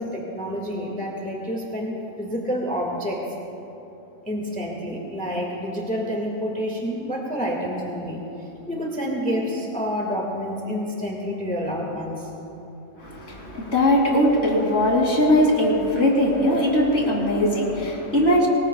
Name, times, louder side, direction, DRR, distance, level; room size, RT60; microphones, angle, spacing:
voice 1, 0.0-3.2 4.2-8.2 8.7-12.3, equal, 5° left, -2 dB, 1.7 m, -28 dB
voice 2, 13.0-18.5, left 1 dB, 55° left, -2 dB, 3.2 m, -20 dB
25.0 x 20.5 x 2.3 m, 3.0 s
omnidirectional pair, 1.4 m